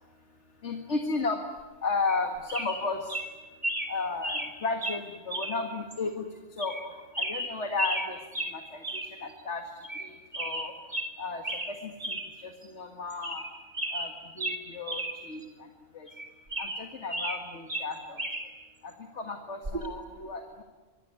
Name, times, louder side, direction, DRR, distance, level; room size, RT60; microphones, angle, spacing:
voice 1, 0.6-1.4 1.8-3.2 3.9-10.8 11.2-13.5 13.9-16.1 16.6-18.2 18.8-20.6, left 3 dB, 85° left, 5 dB, 2.2 m, -34 dB
sound 1, 2.1-2.2 2.5-2.8 3.1-3.3 3.6-3.9 4.2-4.5 4.8-5.0 5.3-5.6 5.9-6.0 6.6-6.8 7.1-8.1 8.3-8.5 8.8-9.1 9.4-9.5 9.8-10.1 10.3-11.1 11.4-11.7 12.0-12.3 12.6-12.7 13.1-13.5 13.7-15.1 15.4-15.5 16.1-17.4 17.7-18.4 19.6-19.9, right 1 dB, 40° right, 3.4 m, -33 dB
24.5 x 23.5 x 9.8 m, 1.3 s
omnidirectional pair, 1.1 m